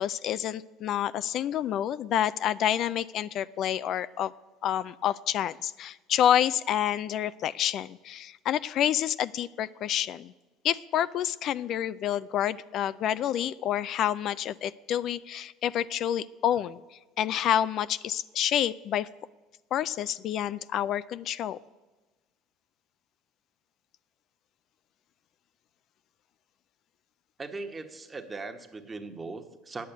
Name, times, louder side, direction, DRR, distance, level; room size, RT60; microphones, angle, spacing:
voice 1, 0.0-4.3 4.6-10.3 10.6-16.8 17.2-19.1 19.7-21.6, left 10 dB, 55° left, 16 dB, 0.3 m, -28 dB
voice 2, 27.4-29.9, right 3 dB, 20° right, 5 dB, 1.3 m, -39 dB
9.4 x 8.5 x 9.1 m, 1.2 s
supercardioid pair, 90°, 0 cm